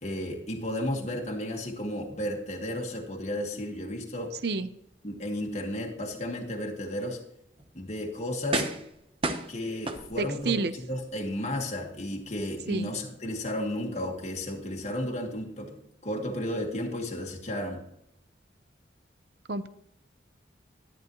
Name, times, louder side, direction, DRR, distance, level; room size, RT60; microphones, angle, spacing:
voice 1, 0.0-4.3 5.0-7.2 7.7-8.7 9.5-17.8, left 1 dB, 35° left, 0 dB, 1.7 m, -33 dB
sound 1, 7.6-7.7 8.5-8.9 9.2-10.5 11.0-11.1, right 3 dB, 30° right, 0.9 m, -31 dB
voice 2, 10.2-10.7 12.7-12.9 19.5-19.7, right 3 dB, 60° right, 12 dB, 0.7 m, -29 dB
11.5 x 11.0 x 3.1 m, 0.78 s
head